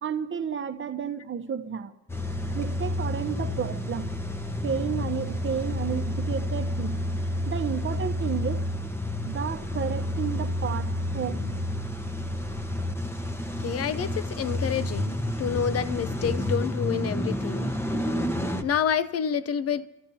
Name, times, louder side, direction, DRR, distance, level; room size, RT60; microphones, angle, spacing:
voice 1, 0.0-1.9 2.5-4.1 4.6-6.9 7.5-8.6 9.2-11.6, right 7 dB, 40° right, 0.9 m, -32 dB
Car / Engine starting / Idling, 2.1-18.6, left 1 dB, 10° left, 1.1 m, -30 dB
voice 2, 13.6-17.7 18.6-19.9, left 8 dB, 50° left, 0.5 m, -28 dB
27.0 x 13.5 x 2.7 m
cardioid pair, 90°, 30 cm